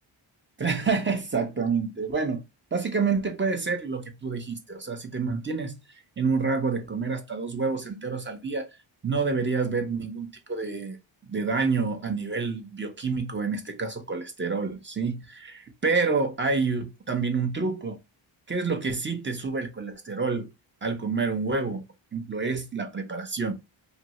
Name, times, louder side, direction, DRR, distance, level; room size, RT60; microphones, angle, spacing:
voice 1, 0.6-2.4 2.7-8.7 9.0-11.0 11.3-18.0 18.5-20.5 20.8-21.8 22.1-23.5, right 4 dB, 25° right, 0.6 m, -28 dB
2.7 x 2.6 x 2.9 m
cardioid pair, 95°, 49 cm